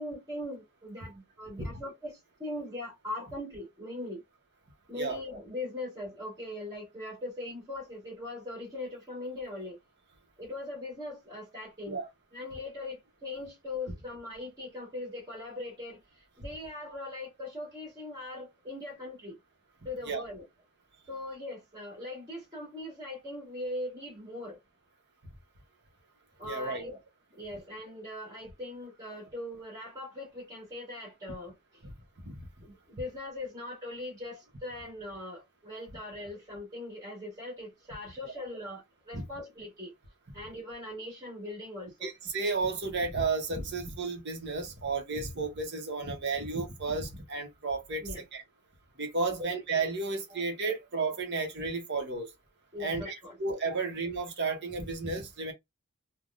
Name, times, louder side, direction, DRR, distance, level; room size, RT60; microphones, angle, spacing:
voice 1, 0.0-4.2 4.9-9.8 10.4-12.0 12.3-19.4 19.8-20.5 21.1-24.6 26.4-27.0 27.3-31.8 32.6-39.9 40.3-42.1 48.0-48.2 49.3-49.4 50.3-50.4 52.7-53.4 53.7-53.8, left 2 dB, 15° right, 1.9 m, -40 dB
voice 2, 26.4-26.8 32.2-32.4 39.1-39.3 42.0-48.0 48.3-48.4 49.0-52.3 52.8-55.5, right 3 dB, 50° right, 0.9 m, -32 dB
3.4 x 2.2 x 2.5 m
head